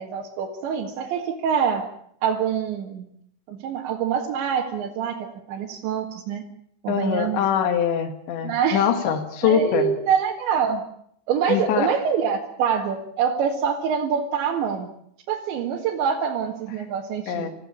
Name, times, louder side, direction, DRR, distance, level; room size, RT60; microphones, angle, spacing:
voice 1, 0.0-1.9 2.2-3.1 3.5-6.4 6.8-7.4 8.4-8.9 9.4-10.8 11.3-14.9 15.3-17.5, right 7 dB, 80° right, -1 dB, 4.2 m, -25 dB
voice 2, 6.9-9.9 11.5-11.9 17.3-17.5, left 8 dB, 80° left, 8 dB, 4.2 m, -23 dB
28.0 x 15.5 x 8.7 m, 0.69 s
omnidirectional pair, 5.1 m